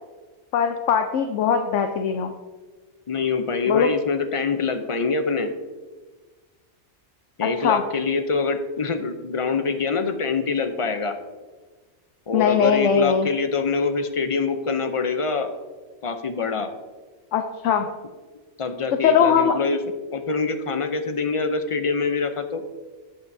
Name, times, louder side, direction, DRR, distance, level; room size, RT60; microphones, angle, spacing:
voice 1, 0.5-2.3 3.7-3.9 7.4-7.8 12.3-13.3 17.3-17.9 19.0-19.6, left 7 dB, 80° left, 6 dB, 1.0 m, -20 dB
voice 2, 3.1-5.5 7.4-11.2 12.3-15.5 16.0-16.7 18.6-19.8 20.1-22.6, left 4 dB, 40° left, 8 dB, 0.5 m, -25 dB
16.5 x 5.5 x 2.7 m, 1.3 s
omnidirectional pair, 1.2 m